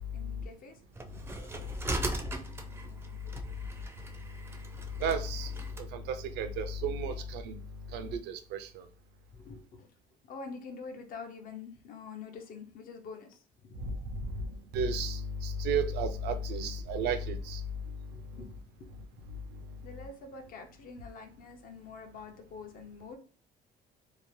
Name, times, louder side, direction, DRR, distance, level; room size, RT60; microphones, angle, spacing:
voice 1, 0.1-4.0 9.3-9.9 10.2-14.0 14.2-14.5 16.5-16.6 18.1-19.2 19.8-23.2, left 4 dB, 60° left, 0.6 m, -47 dB
sound 1, 0.9-5.9, right 2 dB, 15° right, 0.4 m, -39 dB
voice 2, 5.0-5.5 5.9-7.6 7.9-8.8 13.8-17.6, right 3 dB, 80° right, 0.4 m, -33 dB
2.7 x 2.0 x 3.1 m
cardioid pair, 110°, 17 cm